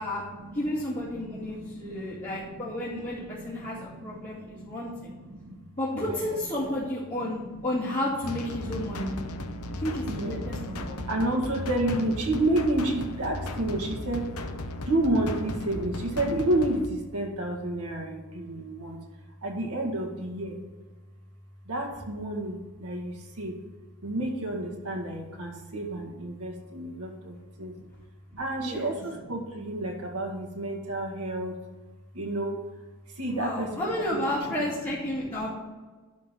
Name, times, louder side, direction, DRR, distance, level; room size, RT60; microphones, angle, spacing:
voice 1, 0.5-5.1 5.8-9.2 9.8-11.0 28.6-28.9 33.2-35.5, left 1 dB, 35° left, -10 dB, 2.5 m, -32 dB
voice 2, 1.1-2.7 3.1-5.6 5.9-6.2 7.4-7.6 7.9-8.0 8.6-14.5 14.9-19.0 19.4-20.6 21.7-23.6 24.0-27.9 28.3-31.6 32.1-32.6 33.1-35.5, right 1 dB, 85° right, 1 dB, 1.8 m, -31 dB
sound 1, 8.2-16.9, left 2 dB, 80° left, 0.9 m, -36 dB
11.5 x 3.9 x 7.5 m, 1.3 s
head